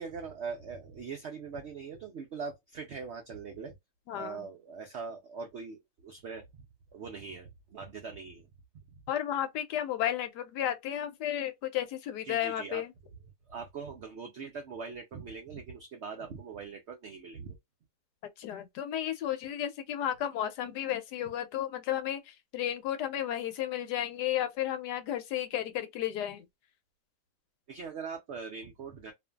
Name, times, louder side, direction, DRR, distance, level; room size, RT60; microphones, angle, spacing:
voice 1, 0.0-3.7 4.1-6.7 6.9-8.5 8.9-9.0 12.2-12.8 13.5-17.6 27.7-29.1, right 5 dB, 75° right, 0.6 m, -41 dB
voice 2, 4.1-4.4 9.1-12.9 18.4-26.4, left 11 dB, 75° left, 1.2 m, -33 dB
2.7 x 2.5 x 2.2 m
omnidirectional pair, 1.9 m